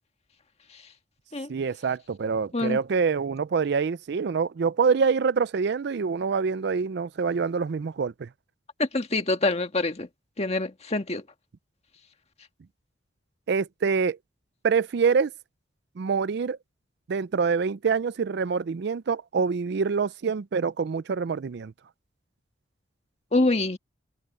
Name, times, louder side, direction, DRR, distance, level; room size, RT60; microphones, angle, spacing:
voice 1, 1.5-8.3 13.5-14.2 14.6-15.3 16.0-16.6 17.1-21.7, right 5 dB, 60° right, 0.4 m, -25 dB
voice 2, 8.8-10.1 10.4-11.2 23.3-23.8, left 2 dB, 35° left, 1.7 m, -25 dB
head